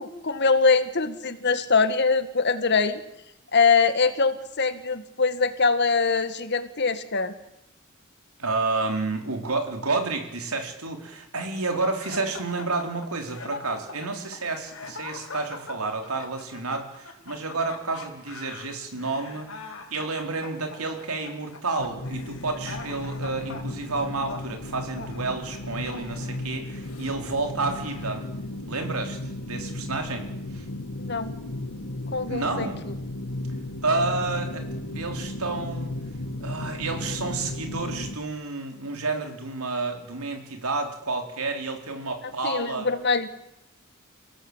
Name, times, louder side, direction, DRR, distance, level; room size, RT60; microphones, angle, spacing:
voice 1, 0.0-3.0 3.5-7.3 31.1-31.3 32.1-32.9 42.4-43.3, left 4 dB, 50° left, 10 dB, 2.0 m, -23 dB
voice 2, 8.4-28.2 28.7-30.2 30.5-30.7 32.3-32.8 33.8-34.6 34.9-35.9 36.4-42.9, right 3 dB, 85° right, 4 dB, 4.2 m, -30 dB
sound 1, 12.0-27.2 27.6-28.3, left 3 dB, 65° left, 4.7 m, -42 dB
sound 2, 21.8-38.2, left 1 dB, 90° left, 2.4 m, -35 dB
29.5 x 17.5 x 8.3 m, 0.88 s
head